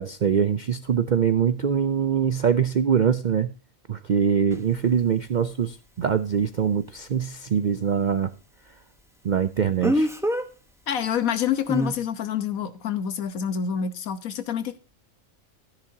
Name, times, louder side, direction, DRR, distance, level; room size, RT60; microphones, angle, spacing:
voice 1, 0.0-3.5 3.9-8.3 9.2-10.1, right 7 dB, 65° right, 0.4 m, -23 dB
Speech, 4.5-4.6 9.8-10.5 11.7-11.9, equal, ahead, 0.8 m, -24 dB
voice 2, 10.9-14.8, left 8 dB, 75° left, 1.5 m, -27 dB
13.0 x 10.5 x 2.7 m
omnidirectional pair, 1.5 m